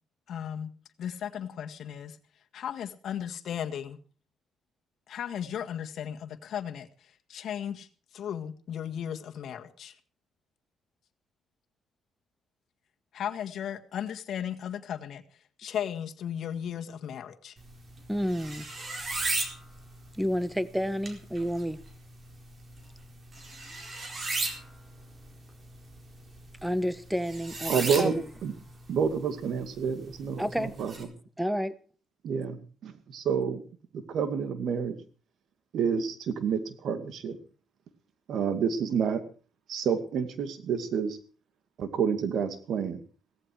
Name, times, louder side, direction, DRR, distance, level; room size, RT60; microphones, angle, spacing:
voice 1, 0.3-0.7 1.0-2.2 2.5-4.0 5.1-6.9 7.3-7.9 8.1-9.9 13.1-15.2 15.6-17.5, left 9 dB, 65° left, 1.7 m, -35 dB
sound 1, 17.6-31.0, right 2 dB, 35° right, 4.3 m, -38 dB
voice 2, 18.1-18.6 20.1-21.8 26.6-27.7 28.0-28.2 30.4-30.7 31.4-31.7, equal, 5° right, 1.2 m, -30 dB
voice 3, 27.7-28.1 28.4-28.5 28.9-30.9 32.2-33.6 34.1-35.0 35.7-37.4 38.3-39.2 39.7-41.2 41.8-43.0, right 6 dB, 70° right, 2.2 m, -29 dB
17.0 x 15.0 x 4.8 m
cardioid pair, 90°, 0 cm